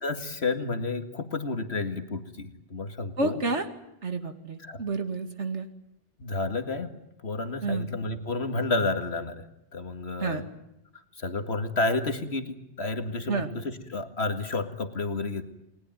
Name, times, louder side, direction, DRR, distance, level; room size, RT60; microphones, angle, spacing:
voice 1, 0.0-3.4 4.6-4.8 6.2-9.4 9.7-10.4 11.2-15.4, left 3 dB, 65° left, 7 dB, 2.2 m, -31 dB
voice 2, 3.2-3.7 4.0-5.7 7.6-7.9 10.2-10.4 13.3-13.5, right 3 dB, 80° right, 7 dB, 2.5 m, -29 dB
30.0 x 20.0 x 9.1 m, 0.84 s
omnidirectional pair, 1.2 m